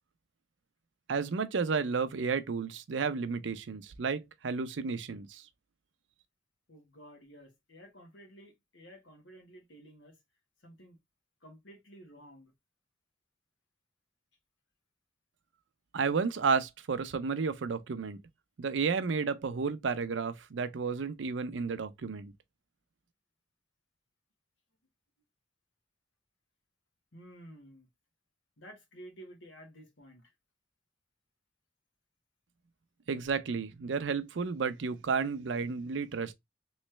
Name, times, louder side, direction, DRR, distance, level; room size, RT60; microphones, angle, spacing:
voice 1, 1.1-5.5 15.9-18.2 18.6-22.3 33.1-36.3, right 5 dB, 75° right, 0.5 m, -32 dB
voice 2, 6.7-10.2 10.6-11.0 11.4-12.5 27.1-27.9 28.6-30.3, right 1 dB, 85° left, 1.4 m, -53 dB
3.1 x 3.1 x 3.1 m
head